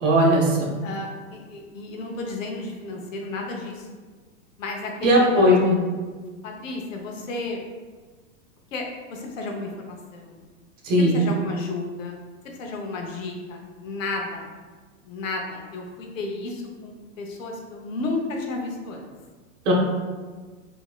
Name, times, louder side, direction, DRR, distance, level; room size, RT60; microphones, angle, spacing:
voice 1, 0.0-0.7 5.0-5.8 10.8-11.2 19.7-19.8, equal, 70° right, -2 dB, 0.9 m, -18 dB
voice 2, 0.8-3.9 4.6-5.6 6.2-7.6 8.7-8.8 9.1-10.4 11.1-12.1 12.4-14.5 15.0-19.1, left 3 dB, 85° left, 1 dB, 0.8 m, -32 dB
3.0 x 2.7 x 2.3 m, 1.4 s
hypercardioid pair, 140°, 38 cm